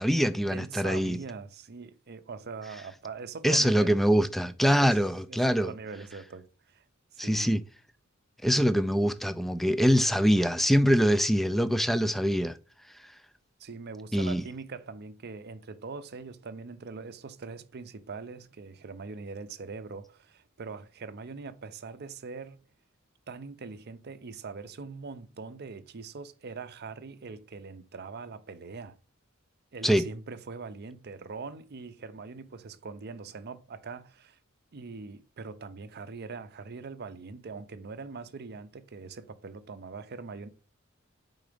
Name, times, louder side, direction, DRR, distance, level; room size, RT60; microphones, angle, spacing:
voice 1, 0.0-1.2 3.4-5.7 7.2-7.6 8.4-12.6 14.1-14.4 29.8-30.0, equal, ahead, 0.4 m, -24 dB
voice 2, 0.5-3.9 4.8-5.0 5.3-6.8 7.1-7.5 13.6-22.6 23.3-29.0 29.7-34.4 34.7-40.5, right 4 dB, 50° right, 0.6 m, -42 dB
5.0 x 3.9 x 5.0 m
head